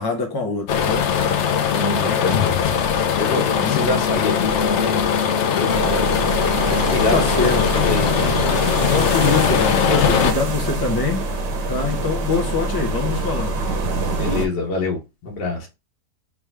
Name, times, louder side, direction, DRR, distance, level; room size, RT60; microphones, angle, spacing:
voice 1, 0.0-1.5 3.5-3.8 7.1-7.9 8.9-11.4 11.7-13.7, left 4 dB, 25° left, 0.5 m, -24 dB
sound 1, 0.7-10.3, left 7 dB, 65° left, 0.7 m, -20 dB
voice 2, 1.7-2.4 3.2-5.1 5.5-8.3 13.9-15.7, left 3 dB, 85° left, 1.8 m, -26 dB
sound 2, 5.7-14.5, right 2 dB, 85° right, 1.4 m, -25 dB
3.5 x 3.2 x 3.3 m
omnidirectional pair, 1.8 m